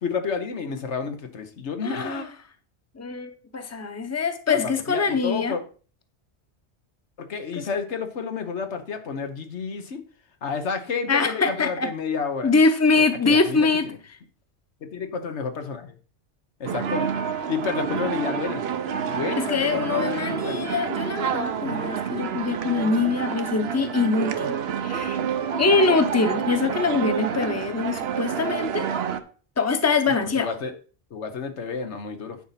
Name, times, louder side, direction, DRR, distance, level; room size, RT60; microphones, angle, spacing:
voice 1, 0.0-2.3 4.5-5.6 7.2-10.0 10.4-12.5 13.2-13.7 14.8-16.0 16.6-17.1 17.5-18.6 19.1-20.7 30.3-30.7 31.1-32.4, left 5 dB, 90° left, 7 dB, 1.4 m, -30 dB
voice 2, 1.8-2.3 2.9-5.6 7.5-7.7 11.1-11.9 12.4-13.9 19.3-24.5 24.8-25.2 25.6-28.9 29.6-30.6, left 4 dB, 15° left, 8 dB, 0.8 m, -23 dB
sound 1, 16.7-29.2, right 7 dB, 65° right, 0.9 m, -28 dB
10.0 x 4.2 x 5.8 m, 0.40 s
omnidirectional pair, 1.1 m